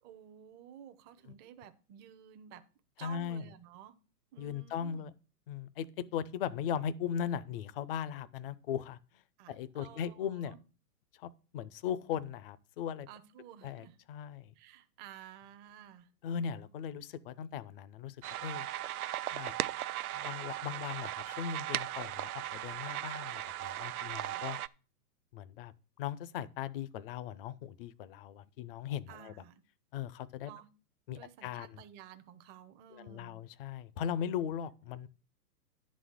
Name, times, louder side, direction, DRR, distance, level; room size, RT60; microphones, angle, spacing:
voice 1, 0.0-2.6 3.0-3.9 4.3-5.1 9.4-10.6 13.1-14.0 14.5-16.1 24.2-24.4 28.6-28.7 29.1-29.6 30.4-30.7 31.1-33.4, right 10 dB, 20° right, 0.7 m, -53 dB
voice 2, 3.0-3.4 4.4-5.1 5.5-9.0 9.5-10.5 11.2-13.1 13.6-14.5 16.2-18.2 18.4-18.7 19.3-19.5 20.1-24.6 25.3-29.3 29.9-30.5 31.1-31.8 32.9-35.1, left 8 dB, 35° left, 0.5 m, -38 dB
sound 1, 18.2-24.7, right 13 dB, 60° right, 0.6 m, -37 dB
11.0 x 4.2 x 7.8 m
hypercardioid pair, 130°, 49 cm